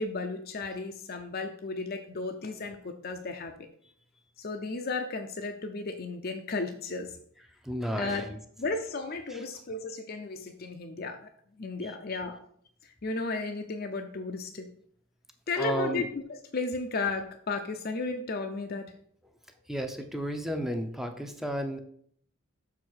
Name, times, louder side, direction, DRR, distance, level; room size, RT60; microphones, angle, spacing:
voice 1, 0.0-3.7 4.4-7.2 8.0-8.3 8.6-11.3 11.5-12.4 12.8-14.7 15.5-16.1 16.5-18.9, left 3 dB, 45° left, 5 dB, 0.6 m, -34 dB
voice 2, 7.4-8.4 9.3-9.5 11.8-12.0 15.5-16.1 19.7-21.8, equal, ahead, 6 dB, 0.6 m, -33 dB
6.3 x 4.8 x 6.2 m, 0.64 s
head